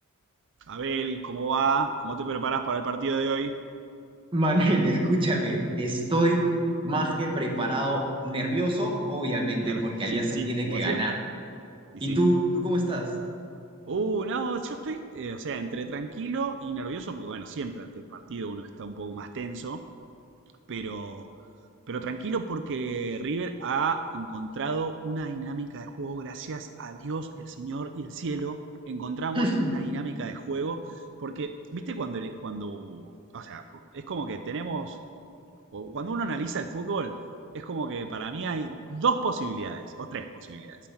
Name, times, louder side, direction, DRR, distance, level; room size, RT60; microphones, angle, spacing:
voice 1, 0.7-3.5 9.6-11.1 11.9-12.2 13.9-19.8 20.7-21.3 21.9-28.6 28.9-33.6 33.9-35.0 35.7-37.1 37.5-40.8, right 4 dB, 55° right, 8 dB, 0.5 m, -32 dB
voice 2, 4.3-6.4 6.8-11.1 12.0-13.1 29.3-29.8, right 1 dB, 25° right, 0 dB, 1.5 m, -25 dB
12.5 x 5.8 x 8.8 m, 2.5 s
head